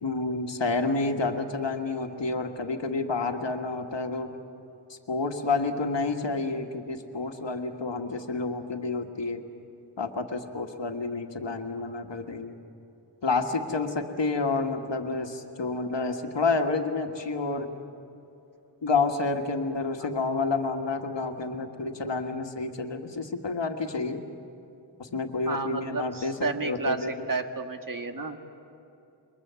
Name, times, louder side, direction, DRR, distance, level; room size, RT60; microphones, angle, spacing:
voice 1, 0.0-4.3 4.9-9.4 10.0-12.6 13.2-17.7 18.8-24.2 25.0-27.3, left 3 dB, 75° left, 4 dB, 1.8 m, -29 dB
voice 2, 25.5-28.4, right 3 dB, 45° right, 5 dB, 1.7 m, -31 dB
28.5 x 23.5 x 7.0 m, 2.7 s
wide cardioid pair, 70°, 44 cm